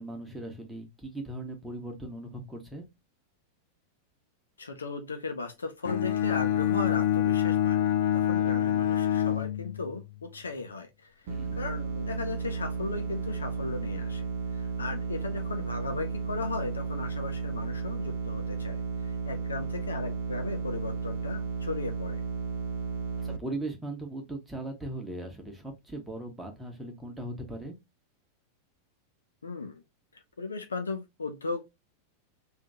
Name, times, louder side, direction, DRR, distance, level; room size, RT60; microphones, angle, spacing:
voice 1, 0.0-2.9 8.4-8.5 11.3-11.6 23.2-27.8, right 1 dB, 5° right, 1.4 m, -39 dB
voice 2, 4.6-14.3 14.5-22.2 29.4-29.8 30.4-31.6, left 3 dB, 75° left, 0.8 m, -36 dB
Bowed string instrument, 5.8-10.1, left 10 dB, 55° left, 0.4 m, -26 dB
sound 1, 11.3-23.4, right 5 dB, 50° right, 0.7 m, -33 dB
3.6 x 2.7 x 3.6 m
figure-of-eight pair, 90°, 0 cm